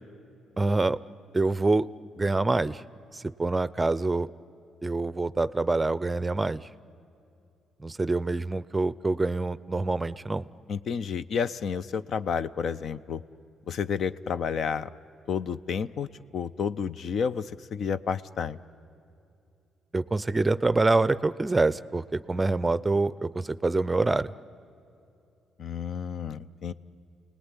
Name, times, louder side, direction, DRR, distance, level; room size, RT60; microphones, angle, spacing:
voice 1, 0.6-1.0 1.3-1.9 2.2-2.8 3.1-4.3 4.8-6.6 7.8-10.5 19.9-24.3, right 3 dB, 20° right, 17 dB, 0.5 m, -26 dB
voice 2, 10.7-13.2 13.7-14.9 15.3-16.1 16.3-18.6 25.6-26.7, left 6 dB, 60° left, 14 dB, 0.6 m, -30 dB
29.5 x 19.5 x 9.8 m, 2.7 s
cardioid pair, 90°, 0 cm